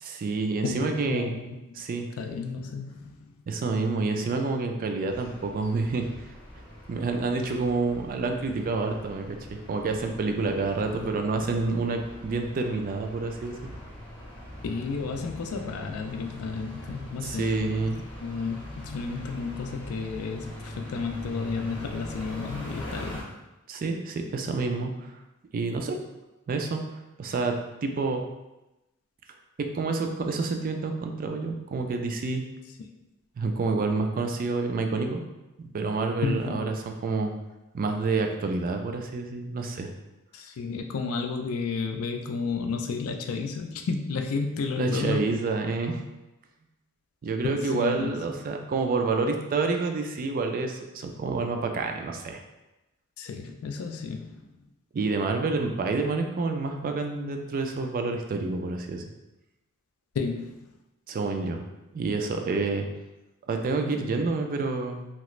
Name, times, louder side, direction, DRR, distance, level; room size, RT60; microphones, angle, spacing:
voice 1, 0.0-1.3 1.7-2.1 3.5-6.1 6.9-9.4 9.7-13.5 17.2-18.0 23.7-24.9 25.5-26.0 26.5-26.8 27.2-28.2 29.6-32.4 33.4-35.2 35.6-36.6 37.0-37.3 37.7-39.9 44.8-46.0 47.2-52.4 54.9-59.0 61.1-61.6 61.9-62.9 63.5-65.1, right 3 dB, 40° right, 4 dB, 0.3 m, -28 dB
voice 2, 0.6-1.8 2.2-3.3 10.9-11.2 14.6-17.9 18.2-23.2 36.2-36.7 40.3-45.3 47.4-48.1 53.2-54.5 60.1-60.6, left 4 dB, 80° left, 4 dB, 0.4 m, -32 dB
sound 1, 5.1-23.2, left 1 dB, 5° left, 0.6 m, -42 dB
2.9 x 2.4 x 3.0 m, 0.98 s
head